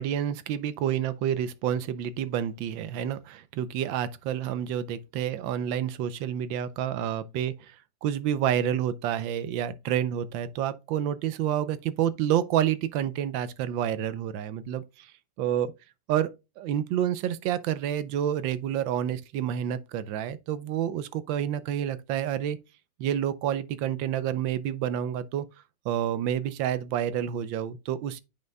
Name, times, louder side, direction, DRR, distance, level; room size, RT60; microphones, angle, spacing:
voice 1, 0.0-7.8 8.0-15.1 15.4-15.7 16.1-22.6 23.0-25.4 25.8-28.2, right 10 dB, 90° right, 1.4 m, -29 dB
9.1 x 5.4 x 2.2 m
omnidirectional pair, 2.0 m